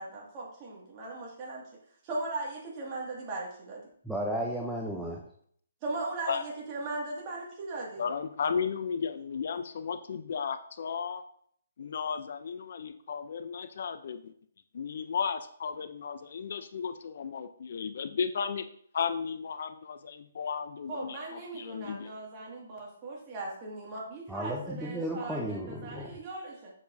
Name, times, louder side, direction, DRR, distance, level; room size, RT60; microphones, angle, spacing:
voice 1, 0.0-1.7 2.0-3.8 5.8-8.0 20.9-26.7, right 2 dB, 25° right, -3 dB, 2.0 m, -38 dB
voice 2, 4.0-5.2 24.3-26.2, equal, ahead, -3 dB, 0.6 m, -34 dB
voice 3, 8.0-11.2 11.8-14.3 14.7-18.7 18.9-22.1, left 6 dB, 55° left, 10 dB, 0.5 m, -34 dB
7.0 x 6.9 x 2.7 m, 0.62 s
hypercardioid pair, 160°, 0 cm